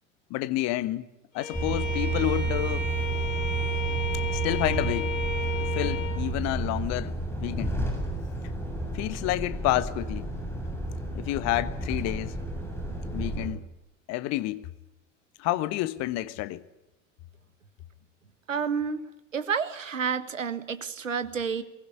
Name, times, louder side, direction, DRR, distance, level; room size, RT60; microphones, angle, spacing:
voice 1, 0.3-1.0 1.3-2.8 4.3-5.1 5.6-7.1 7.4-7.8 8.9-10.3 11.1-12.4 13.1-13.6 14.1-14.7 15.4-16.6, left 16 dB, 45° left, 1.3 m, -29 dB
Bowed string instrument, 1.3-6.2, left 5 dB, 75° left, 7.9 m, -34 dB
Truck, 1.5-13.5, right 3 dB, 5° left, 7.3 m, -31 dB
voice 2, 18.5-19.0 19.3-21.6, right 6 dB, 80° right, 1.6 m, -29 dB
22.0 x 19.5 x 9.6 m
figure-of-eight pair, 75°, 38 cm